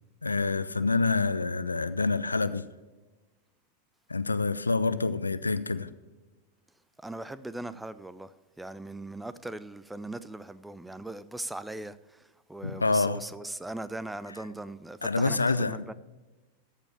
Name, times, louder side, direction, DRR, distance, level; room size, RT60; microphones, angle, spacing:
voice 1, 0.2-2.6 4.1-5.9 12.6-13.2 15.0-15.9, left 3 dB, 80° left, 0.5 m, -27 dB
voice 2, 7.0-15.9, right 2 dB, 5° right, 0.4 m, -40 dB
14.0 x 5.0 x 6.9 m
figure-of-eight pair, 90°, 0 cm